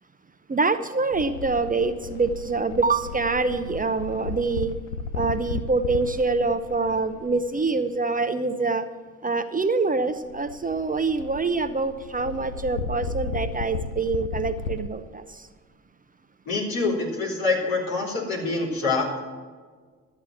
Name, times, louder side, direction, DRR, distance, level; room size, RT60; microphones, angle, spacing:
voice 1, 0.5-4.7 5.1-8.9 9.2-15.5, right 3 dB, 20° right, 9 dB, 0.8 m, -25 dB
sound 1, 1.1-7.8 10.1-14.9, left 4 dB, 90° left, 0.6 m, -35 dB
voice 2, 16.5-19.3, left 3 dB, 65° left, -2 dB, 3.9 m, -26 dB
12.5 x 8.5 x 7.4 m, 1.5 s
hypercardioid pair, 50°, 37 cm